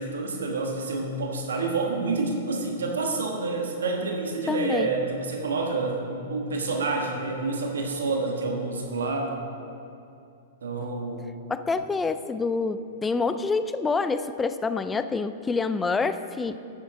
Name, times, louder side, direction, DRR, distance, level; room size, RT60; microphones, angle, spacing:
voice 1, 0.0-9.4 10.6-11.2, right 3 dB, 90° right, 2 dB, 1.3 m, -28 dB
voice 2, 4.5-4.9 11.5-16.6, left 4 dB, 15° left, 11 dB, 0.4 m, -27 dB
10.0 x 9.8 x 3.7 m, 2.5 s
hypercardioid pair, 125°, 0 cm